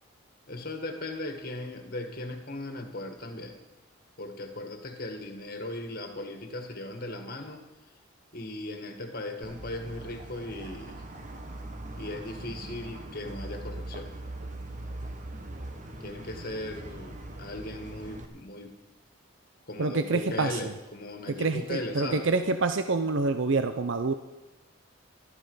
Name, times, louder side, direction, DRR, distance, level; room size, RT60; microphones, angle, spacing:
voice 1, 0.5-3.6 4.2-7.6 8.3-11.0 12.0-14.1 16.0-18.8 19.7-22.3, left 2 dB, 45° left, 5 dB, 1.8 m, -38 dB
sound 1, 9.4-18.3, right 1 dB, 35° right, 1.2 m, -41 dB
voice 2, 19.8-20.7 21.3-24.1, right 3 dB, 65° right, 9 dB, 0.6 m, -27 dB
14.0 x 12.5 x 5.5 m, 1.1 s
head